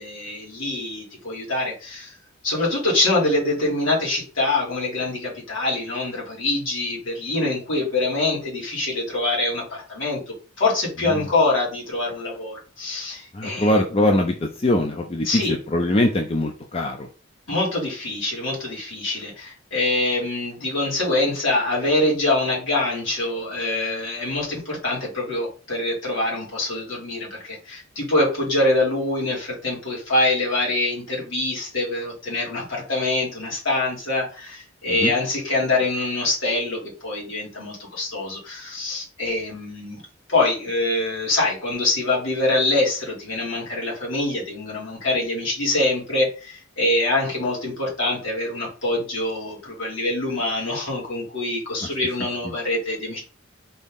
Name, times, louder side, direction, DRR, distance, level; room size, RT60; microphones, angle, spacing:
voice 1, 0.0-2.2 2.4-9.6 9.9-13.8 15.2-15.5 17.5-40.0 40.3-53.2, left 2 dB, 70° left, -4 dB, 2.2 m, -24 dB
voice 2, 13.3-17.1 34.9-35.1 52.4-52.6, left 1 dB, 30° left, 3 dB, 0.4 m, -22 dB
4.1 x 2.8 x 3.6 m, 0.35 s
head